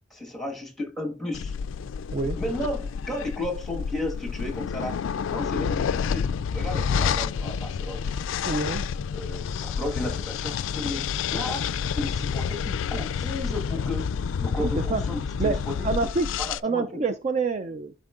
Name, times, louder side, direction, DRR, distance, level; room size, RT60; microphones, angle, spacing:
voice 1, 0.1-1.5 2.4-4.9 5.3-8.1 9.1-11.7 11.9-14.1 14.4-16.1 16.4-16.9, left 1 dB, ahead, 1.5 m, -33 dB
sound 1, 1.3-16.6, left 6 dB, 70° left, 0.3 m, -29 dB
voice 2, 8.5-8.8 14.6-15.0 15.4-15.6 15.8-16.3 16.6-17.9, right 4 dB, 35° right, 0.3 m, -27 dB
11.0 x 4.4 x 2.4 m
head